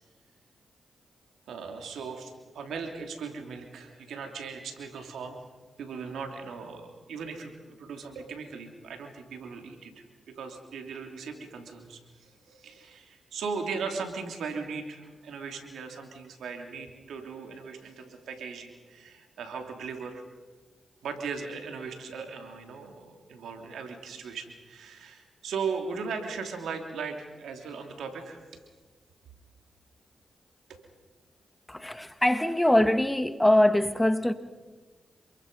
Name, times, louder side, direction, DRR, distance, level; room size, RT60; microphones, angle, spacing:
voice 1, 1.5-5.4 5.8-20.2 21.0-28.4, right 5 dB, 85° right, 2.9 m, -38 dB
voice 2, 31.7-34.3, left 1 dB, 10° left, 1.6 m, -23 dB
27.5 x 22.0 x 5.4 m
supercardioid pair, 50°, 0 cm